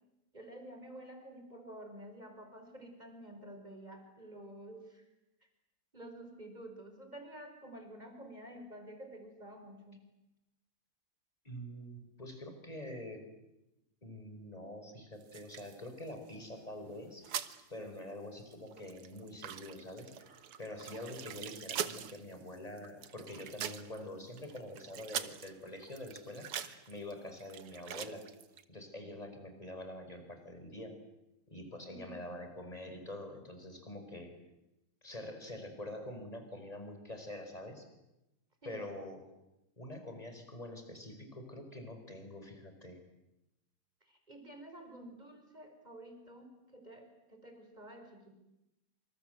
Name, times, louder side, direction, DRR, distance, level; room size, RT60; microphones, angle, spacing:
voice 1, 0.3-5.0 5.9-10.0 31.8-32.3 38.6-38.9 44.0-48.4, right 1 dB, 20° right, 5 dB, 5.2 m, -50 dB
voice 2, 11.4-13.3 14.0-17.3 17.7-28.3 28.7-31.0 31.5-34.4 35.0-37.9 38.6-39.2 39.8-43.0, left 1 dB, 15° left, 6 dB, 5.1 m, -46 dB
sound 1, 15.2-16.7 17.0-17.6 17.9-18.1 18.4-28.6, right 9 dB, 85° right, 2.2 m, -43 dB
27.0 x 26.5 x 8.0 m, 0.93 s
omnidirectional pair, 2.4 m